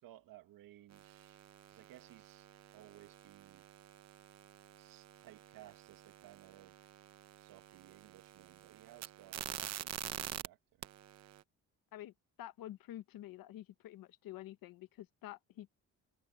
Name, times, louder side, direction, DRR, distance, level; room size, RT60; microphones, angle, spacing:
voice 1, 0.0-1.4 1.7-3.6 4.8-6.8 7.4-9.9 10.2-10.8, right 13 dB, 90° right, 1.9 m, -59 dB
sound 1, 0.9-10.5 10.8-11.4, right 11 dB, 50° right, 0.8 m, -48 dB
voice 2, 12.4-15.7, left 13 dB, 85° left, 1.1 m, -49 dB
cardioid pair, 150°, 33 cm